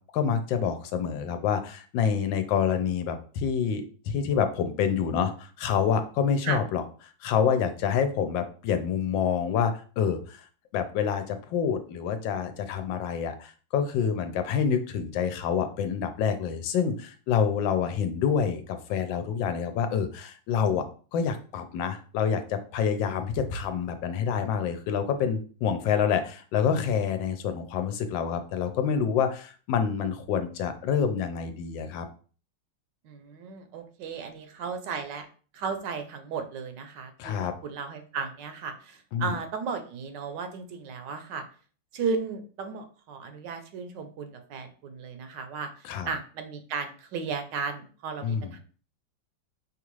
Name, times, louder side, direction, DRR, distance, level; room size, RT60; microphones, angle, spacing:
voice 1, 0.1-6.8 7.2-10.4 10.7-20.8 21.1-32.1 37.2-37.5 39.1-39.4 45.8-46.1 48.2-48.5, left 7 dB, 85° left, 8 dB, 1.3 m, -27 dB
voice 2, 33.0-35.3 35.5-41.4 41.9-48.6, right 5 dB, 75° right, 7 dB, 1.2 m, -35 dB
5.3 x 2.4 x 3.0 m, 0.40 s
omnidirectional pair, 2.0 m